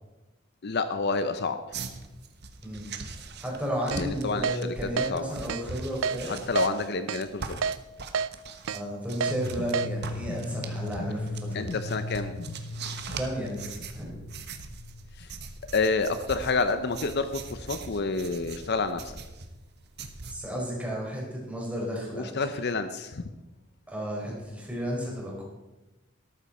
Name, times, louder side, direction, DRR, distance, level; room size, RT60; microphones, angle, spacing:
voice 1, 0.6-1.6 4.0-4.5 4.8-5.3 6.2-7.6 11.5-12.3 15.2-15.3 15.7-19.1 22.1-23.2, left 4 dB, 55° left, 10 dB, 0.7 m, -29 dB
sound 1, 1.7-9.8 10.0-20.4, right 4 dB, 55° right, 1.2 m, -41 dB
voice 2, 3.4-6.3 8.7-11.7 13.0-14.1 20.3-22.3 23.9-25.4, equal, 5° right, -3 dB, 4.4 m, -33 dB
Keyboard (musical), 3.9-4.0 4.4-4.6 5.0-5.1 5.5-5.6 6.0-6.2 6.6-6.7 7.1-7.2 7.6-7.8 8.1-8.3 8.7-8.8 9.2-9.3 9.7-9.9, right 6 dB, 75° right, 0.4 m, -28 dB
sound 2, 9.3-15.3, left 2 dB, 80° left, 0.9 m, -38 dB
13.5 x 12.5 x 4.3 m, 1.1 s
head